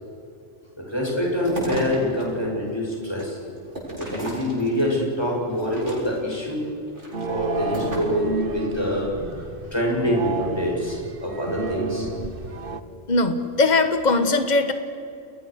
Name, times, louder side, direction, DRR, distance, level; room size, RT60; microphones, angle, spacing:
voice 1, 0.8-3.4 4.0-6.7 7.3-12.1, equal, 20° left, -2 dB, 7.5 m, -25 dB
sound 1, 1.0-2.2 2.7-5.0 5.5-6.3 6.9-8.2, right 1 dB, 70° right, 7.4 m, -34 dB
sound 2, 7.1-12.8, right 3 dB, 50° right, 1.3 m, -31 dB
voice 2, 13.1-14.7, left 3 dB, 35° left, 8 dB, 1.7 m, -20 dB
30.0 x 21.5 x 6.6 m, 2.7 s
omnidirectional pair, 1.2 m